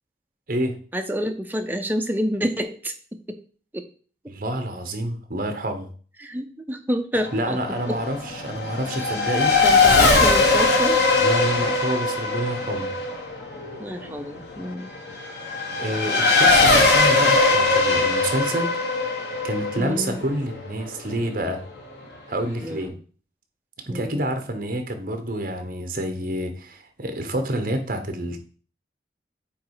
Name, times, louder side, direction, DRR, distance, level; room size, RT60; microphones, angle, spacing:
voice 1, 0.9-2.9 3.3-3.4 3.7-3.8 6.2-7.6 7.9-8.0 9.6-11.1 13.8-14.9 19.8-20.2 22.6-23.0 23.9-24.2, equal, 10° right, 0.6 m, -28 dB
voice 2, 4.3-5.9 7.3-9.6 11.2-12.9 15.8-18.7 19.4-21.6 22.3-22.9 23.9-28.4, right 1 dB, 50° right, 1.1 m, -28 dB
Race car auto racing / Accelerating revving vroom, 7.1-21.2, left 3 dB, 65° left, 1.5 m, -20 dB
8.6 x 3.2 x 4.8 m
head